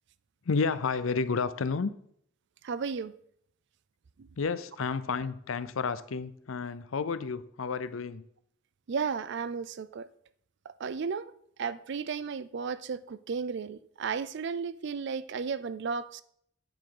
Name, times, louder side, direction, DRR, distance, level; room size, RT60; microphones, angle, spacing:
voice 1, 0.4-1.9 4.4-8.2, left 5 dB, 80° left, 0.6 m, -31 dB
voice 2, 2.6-3.1 8.9-10.1 10.8-11.3 11.6-16.2, right 5 dB, 60° right, 0.4 m, -34 dB
8.9 x 7.7 x 3.9 m
head